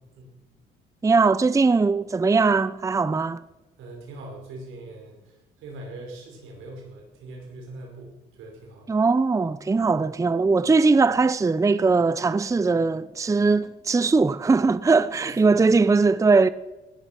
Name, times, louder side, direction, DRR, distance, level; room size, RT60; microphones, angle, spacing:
voice 1, 1.0-3.4 8.9-16.5, right 4 dB, 15° right, 0.5 m, -20 dB
voice 2, 3.8-8.9 15.2-15.9, right 2 dB, 90° right, 5.1 m, -42 dB
18.0 x 12.0 x 5.9 m
cardioid pair, 90°, 20 cm